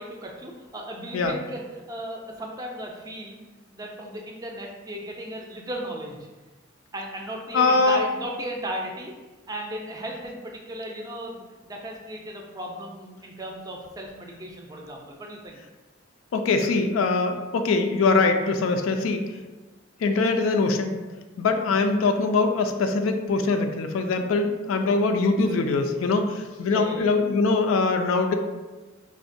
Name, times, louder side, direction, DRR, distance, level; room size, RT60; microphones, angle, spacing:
voice 1, 0.0-3.4 3.7-6.3 6.9-9.2 9.5-15.6 26.7-27.2, right 1 dB, 20° right, 0 dB, 0.4 m, -36 dB
voice 2, 7.5-8.0 16.3-19.2 20.0-21.0 21.4-28.3, left 3 dB, 85° left, 6 dB, 0.3 m, -22 dB
4.5 x 2.1 x 2.5 m, 1.2 s
head